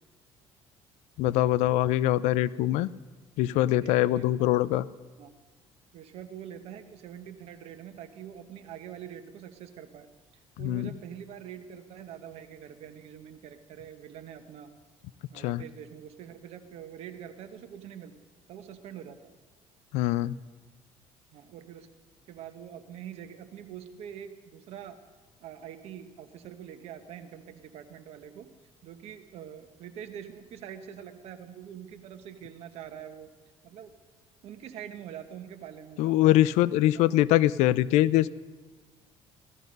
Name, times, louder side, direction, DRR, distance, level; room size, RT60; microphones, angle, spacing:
voice 1, 1.2-2.9 3.4-4.9 10.6-10.9 15.3-15.6 19.9-20.3 36.0-38.3, left 14 dB, 90° left, 19 dB, 0.5 m, -23 dB
voice 2, 3.8-4.5 5.2-5.3 5.9-10.1 10.3-14.7 15.3-18.1 18.5-19.3 21.3-21.9 22.3-25.0 25.4-28.5 28.8-33.3 33.6-33.9 34.4-36.3 36.9-37.0, right 9 dB, 65° right, 8 dB, 1.3 m, -44 dB
16.0 x 13.5 x 5.3 m, 1.4 s
cardioid pair, 135°, 11 cm